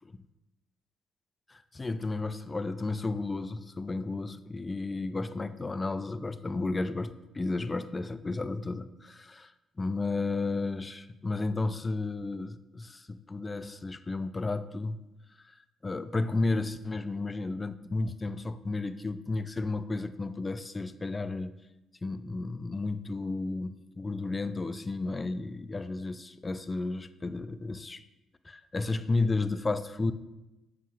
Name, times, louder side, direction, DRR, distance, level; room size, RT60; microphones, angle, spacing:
voice 1, 1.5-15.0 15.4-15.6 15.8-21.5 22.0-28.1 28.4-30.1, left 3 dB, 25° left, 12 dB, 0.3 m, -33 dB
7.5 x 5.5 x 2.4 m, 0.97 s
cardioid pair, 90°, 0 cm